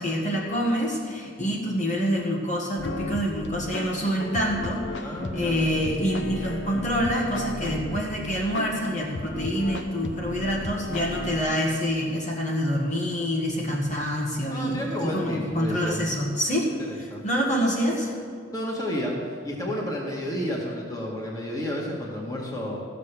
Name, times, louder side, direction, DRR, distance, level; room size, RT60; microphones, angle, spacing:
voice 1, 0.0-18.1, equal, 40° left, -3 dB, 1.8 m, -27 dB
sound 1, 2.8-11.5, left 2 dB, 65° left, 0.8 m, -35 dB
voice 2, 5.0-5.6 14.5-16.0 16.8-17.2 18.5-22.8, equal, 20° left, -3 dB, 1.9 m, -31 dB
14.5 x 6.8 x 6.8 m, 2.3 s
head